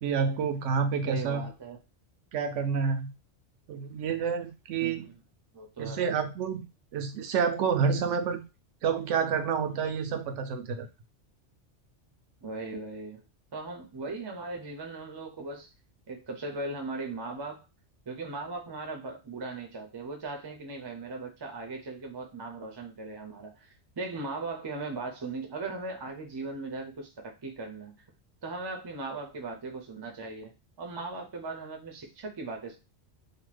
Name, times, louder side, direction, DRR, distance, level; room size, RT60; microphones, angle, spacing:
voice 1, 0.0-1.4 2.3-3.1 3.7-5.1 5.8-6.6 6.9-8.4 8.8-10.9, right 6 dB, 85° right, 0.9 m, -28 dB
voice 2, 1.0-1.8 4.8-5.2 5.5-6.1 12.4-13.2 13.5-15.7 16.1-17.6 18.1-28.0 28.4-32.8, right 3 dB, 35° right, 0.4 m, -38 dB
2.7 x 2.1 x 3.2 m
omnidirectional pair, 1.2 m